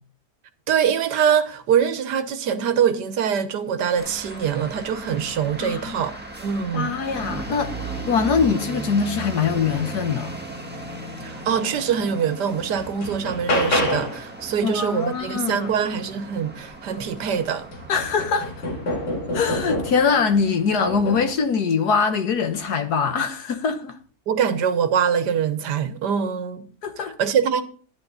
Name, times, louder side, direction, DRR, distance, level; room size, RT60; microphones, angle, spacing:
voice 1, 0.7-6.1 6.4-7.0 11.2-17.7 24.3-26.7 27.2-27.6, right 7 dB, 85° right, 1.6 m, -23 dB
sound 1, 4.0-20.9, right 2 dB, 5° right, 1.6 m, -37 dB
voice 2, 5.6-6.0 6.7-10.3 14.6-15.7 17.9-18.5 19.3-23.9 26.8-27.2, left 5 dB, 70° left, 1.8 m, -23 dB
sound 2, 11.9-12.0 12.5-14.3 16.7-16.8 17.2-20.2 20.9-21.4 22.4-22.7, left 1 dB, 90° left, 3.0 m, -27 dB
10.5 x 10.5 x 4.1 m
omnidirectional pair, 1.8 m